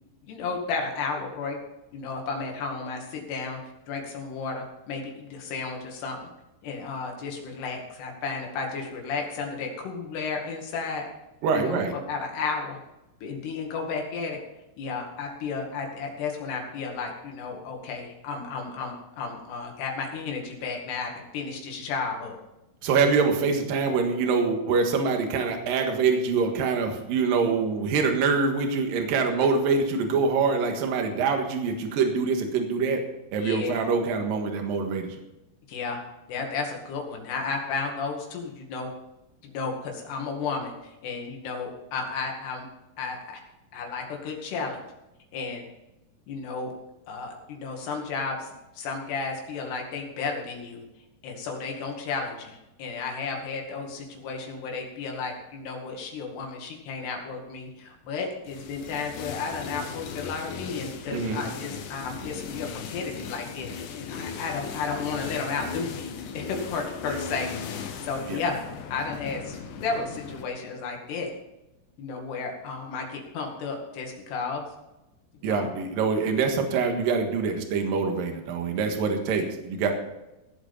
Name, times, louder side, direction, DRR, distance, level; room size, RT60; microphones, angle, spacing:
voice 1, 0.3-1.6 1.9-3.6 3.9-6.3 6.6-11.1 11.5-11.8 12.1-12.8 13.2-14.4 14.8-22.4 33.4-33.7 35.7-36.0 36.3-38.9 39.4-42.7 43.0-43.4 43.7-44.8 45.3-45.6 46.3-46.7 47.1-48.5 48.8-50.8 51.2-67.5 68.0-68.6 68.9-71.3 72.0-74.7 75.5-75.7, left 4 dB, 85° left, 1 dB, 4.3 m, -33 dB
voice 2, 11.4-11.9 22.8-33.0 33.3-35.2 61.1-61.4 68.3-68.4 75.4-79.9, right 5 dB, 65° right, 4 dB, 3.1 m, -25 dB
sound 1, 58.5-70.4, left 6 dB, 65° left, 2.2 m, -37 dB
16.5 x 7.9 x 5.5 m, 0.96 s
omnidirectional pair, 4.6 m